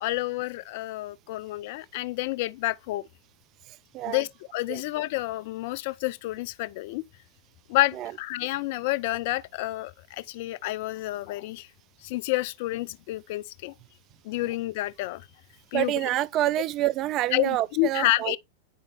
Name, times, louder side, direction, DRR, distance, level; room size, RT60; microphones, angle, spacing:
voice 1, 0.0-3.0 4.1-7.0 7.7-11.7 12.0-13.7 14.2-15.3 15.7-15.9 17.3-18.4, left 18 dB, 55° left, 0.5 m, -29 dB
voice 2, 3.7-4.2 4.7-4.8 8.0-8.1 15.7-18.4, right 14 dB, 35° right, 0.4 m, -27 dB
9.2 x 5.1 x 3.5 m
figure-of-eight pair, 95°, 0 cm